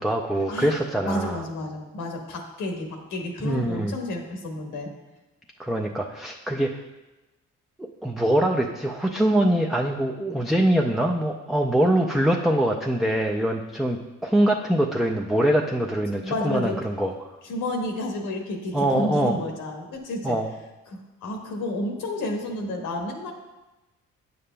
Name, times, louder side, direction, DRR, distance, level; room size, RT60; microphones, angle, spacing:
voice 1, 0.0-1.4 3.4-4.0 5.6-6.8 7.8-17.3 18.7-19.4 20.2-20.5, right 1 dB, ahead, 0 dB, 0.3 m, -23 dB
voice 2, 1.0-4.9 16.2-16.8 17.4-20.4 20.9-23.3, left 1 dB, 85° left, 2 dB, 1.3 m, -31 dB
8.5 x 6.8 x 2.2 m, 1.1 s
cardioid pair, 90°, 30 cm